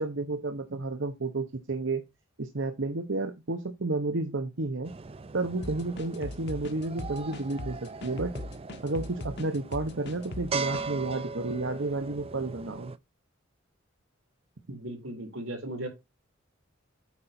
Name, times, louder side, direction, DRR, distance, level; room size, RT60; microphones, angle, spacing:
voice 1, 0.0-2.0 2.4-4.9 5.3-8.3 8.8-12.9, right 2 dB, 65° right, 1.0 m, -31 dB
sound 1, 4.9-13.0, right 4 dB, 30° right, 0.5 m, -39 dB
sound 2, 5.6-10.9, left 2 dB, 55° left, 1.1 m, -40 dB
voice 2, 14.7-15.9, right 1 dB, 85° right, 3.7 m, -37 dB
8.6 x 5.0 x 4.3 m
head